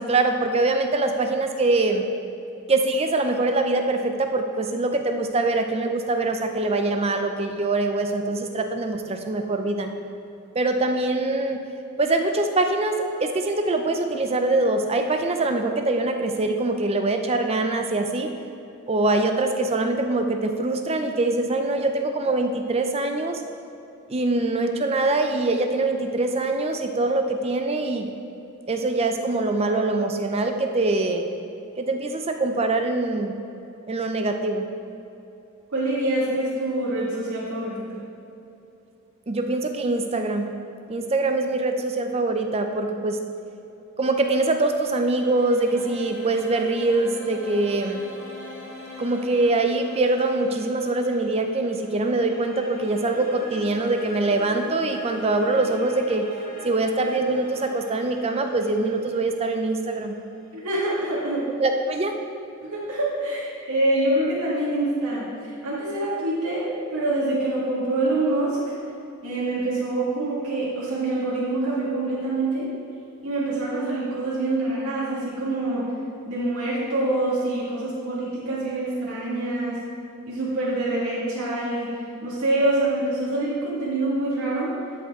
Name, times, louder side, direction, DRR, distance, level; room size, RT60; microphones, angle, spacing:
voice 1, 0.0-2.1 2.7-9.9 10.5-11.6 12.0-18.3 18.9-23.4 24.1-28.1 28.7-31.3 31.8-33.4 33.9-34.7 39.3-40.5 40.9-43.2 44.0-48.0 49.0-56.3 56.6-60.2 61.6-62.2, right 2 dB, 30° right, 5 dB, 0.5 m, -23 dB
voice 2, 35.7-37.8 60.5-61.5 62.6-68.8 69.2-72.7 73.2-75.9 76.3-79.8 80.3-84.7, right 2 dB, 90° right, -7 dB, 1.9 m, -25 dB
sound 1, 44.4-61.4, equal, 45° left, 1.9 m, -42 dB
13.0 x 5.3 x 3.6 m, 2.8 s
head